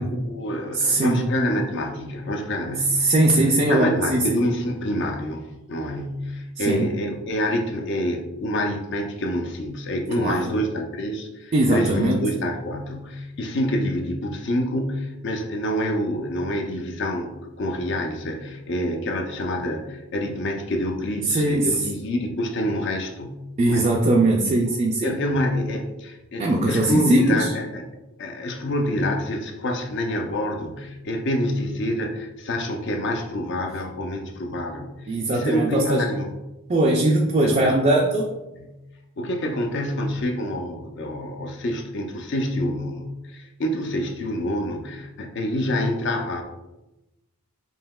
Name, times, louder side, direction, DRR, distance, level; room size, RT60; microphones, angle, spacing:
voice 1, 0.0-3.0 3.7-23.9 25.0-27.8 28.2-35.0 35.3-36.3 37.4-38.0 38.6-38.8 39.2-46.4, left 1 dB, 50° left, 3 dB, 0.4 m, -27 dB
voice 2, 0.7-1.2 3.0-4.4 6.6-6.9 10.2-10.6 11.5-12.2 21.3-21.8 23.6-25.2 26.4-27.5 35.1-36.1 36.7-38.3, right 2 dB, 30° right, 0 dB, 0.3 m, -20 dB
5.4 x 2.8 x 2.3 m, 1.0 s
head